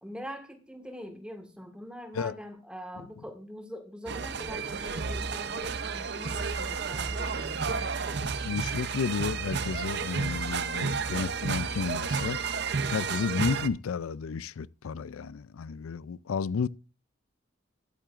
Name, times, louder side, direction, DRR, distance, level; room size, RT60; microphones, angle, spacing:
voice 1, 0.0-7.8, equal, 5° right, 1.6 m, -43 dB
sound 1, 4.1-13.7, right 5 dB, 50° right, 0.6 m, -31 dB
voice 2, 8.2-12.4 12.9-16.7, left 5 dB, 85° left, 0.4 m, -32 dB
13.0 x 10.5 x 2.5 m
head